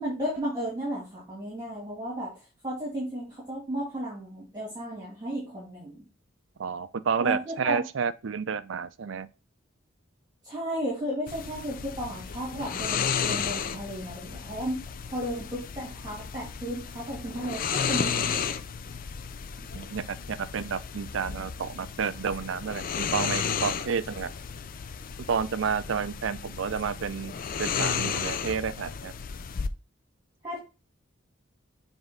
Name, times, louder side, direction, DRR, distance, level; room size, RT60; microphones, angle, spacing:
voice 1, 0.0-2.3 2.6-6.0 7.2-7.8 10.4-14.8 15.1-17.6 17.9-18.5 30.4-30.6, equal, 20° right, 2.5 m, -34 dB
voice 2, 6.6-9.3 19.7-24.3 25.3-27.3 27.6-29.1, right 6 dB, 65° right, 0.4 m, -30 dB
sound 1, 11.3-29.7, left 7 dB, 45° left, 0.4 m, -33 dB
7.4 x 3.5 x 3.7 m
head